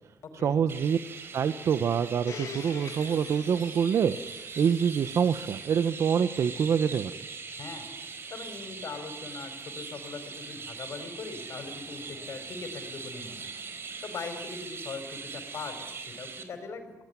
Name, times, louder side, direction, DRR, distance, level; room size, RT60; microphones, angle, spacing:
voice 1, 0.3-1.0 1.3-7.1, right 7 dB, 65° right, 11 dB, 1.0 m, -26 dB
Chirp tweet, 0.7-16.4, right 5 dB, 50° right, 3.9 m, -41 dB
Domestic sounds home sounds, 2.3-7.1 7.9-8.0, left 8 dB, 80° left, 2.0 m, -47 dB
voice 2, 7.6-7.9 8.3-13.6 14.0-17.0, left 4 dB, 60° left, 7 dB, 5.5 m, -40 dB
26.0 x 18.5 x 9.7 m, 0.99 s
cardioid pair, 115°, 5 cm